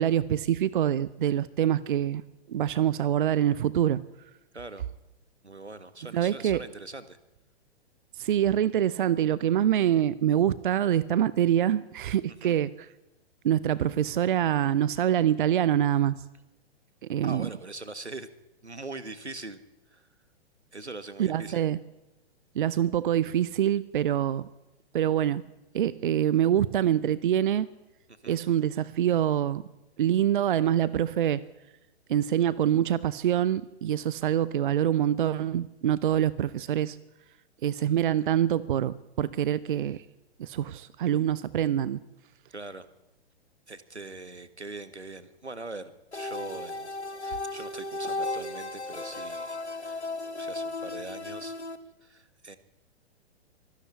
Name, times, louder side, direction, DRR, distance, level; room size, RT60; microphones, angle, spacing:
voice 1, 0.0-2.2 2.5-4.0 6.1-6.6 8.2-12.9 13.4-16.1 17.1-17.5 21.2-21.8 22.5-24.5 24.9-25.4 25.7-27.7 28.3-29.6 30.0-31.4 32.1-37.0 37.6-40.0 40.4-42.0, right 10 dB, 50° right, 20 dB, 0.8 m, -25 dB
voice 2, 4.5-4.9 5.4-7.2 12.4-12.6 17.2-18.3 18.6-19.6 19.9-20.1 20.7-21.6 28.2-28.4 42.5-42.9 43.7-46.9 47.2-50.1 50.4-51.5 52.0-52.6, right 3 dB, 85° right, 13 dB, 1.7 m, -42 dB
sound 1, 46.1-51.8, left 2 dB, 85° left, 1.9 m, -35 dB
24.5 x 12.5 x 9.7 m, 0.97 s
figure-of-eight pair, 115°, 33 cm